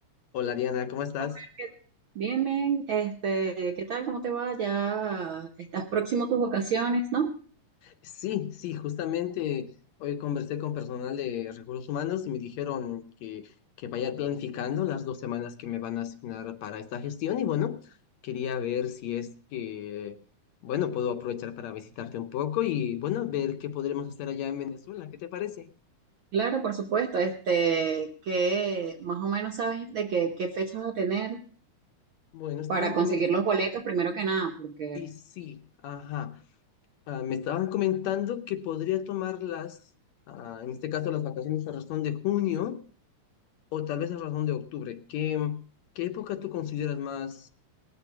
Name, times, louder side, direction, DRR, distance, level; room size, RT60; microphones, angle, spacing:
voice 1, 0.3-1.4 7.8-9.7 10.0-13.4 13.8-17.9 18.2-20.2 20.6-25.7 32.3-33.2 35.0-36.4 37.1-39.8 40.3-42.8 43.7-45.6 46.0-47.5, left 10 dB, 70° left, 8 dB, 2.0 m, -32 dB
voice 2, 1.4-1.7 2.1-7.3 26.3-31.4 32.7-35.0, right 5 dB, 65° right, 2 dB, 1.2 m, -28 dB
19.0 x 7.0 x 5.9 m, 0.44 s
omnidirectional pair, 3.4 m